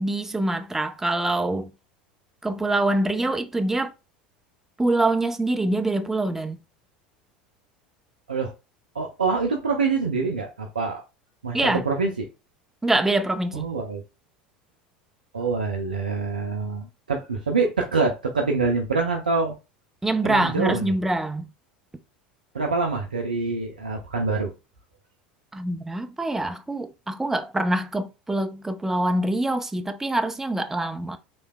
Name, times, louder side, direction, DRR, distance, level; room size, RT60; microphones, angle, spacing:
voice 1, 0.0-1.7 2.4-3.9 4.8-6.6 11.5-11.8 12.8-13.7 20.0-21.4 25.5-31.2, right 2 dB, 10° right, 0.4 m, -25 dB
voice 2, 8.9-11.0 11.4-12.3 13.5-14.0 15.3-19.5 20.2-20.9 22.5-24.5, right 4 dB, 75° right, 0.5 m, -25 dB
3.2 x 2.8 x 2.3 m
figure-of-eight pair, 75°, 5 cm